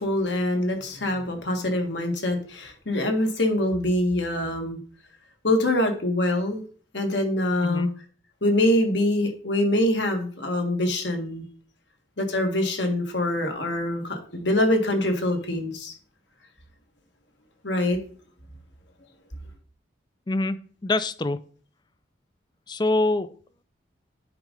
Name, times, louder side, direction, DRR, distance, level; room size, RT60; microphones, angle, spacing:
voice 1, 0.0-4.8 5.4-6.6 6.9-7.9 8.4-11.4 12.2-15.9 17.6-18.0, left 1 dB, 70° left, 4 dB, 1.7 m, -24 dB
voice 2, 20.3-20.6 20.8-21.4 22.7-23.3, left 2 dB, 25° left, 14 dB, 0.4 m, -24 dB
9.3 x 3.8 x 5.1 m, 0.43 s
head